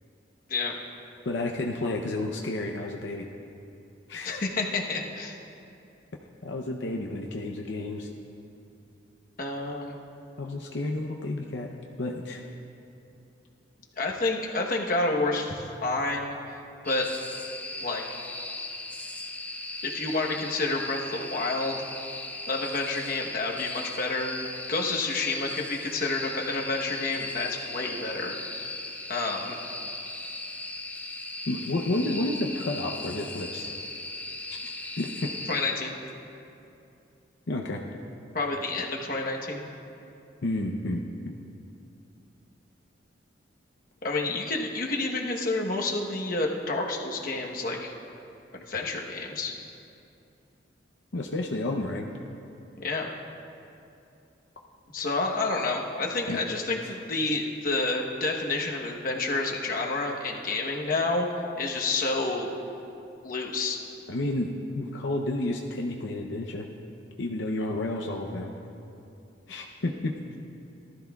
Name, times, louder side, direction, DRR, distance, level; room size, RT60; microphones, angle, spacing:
voice 1, 1.2-3.3 4.1-4.4 6.4-8.1 10.4-11.7 12.0-12.4 31.5-33.7 34.5-34.6 35.0-35.3 37.5-37.8 40.4-41.0 51.1-52.1 56.3-56.4 64.1-66.7 67.2-68.5 69.5-70.1, left 2 dB, 70° left, 1 dB, 0.7 m, -31 dB
voice 2, 4.2-5.3 9.4-10.0 14.0-16.5 16.8-17.1 17.8-18.2 19.8-21.9 22.5-28.4 29.1-29.6 35.5-35.9 38.3-39.6 44.0-47.9 48.5-49.5 52.8-53.1 54.9-61.3 61.6-62.5 63.2-63.8, left 3 dB, 45° left, 0 dB, 1.0 m, -29 dB
sound 1, 16.9-35.6, left 2 dB, 10° left, 0.5 m, -38 dB
18.5 x 13.0 x 2.3 m, 2.7 s
head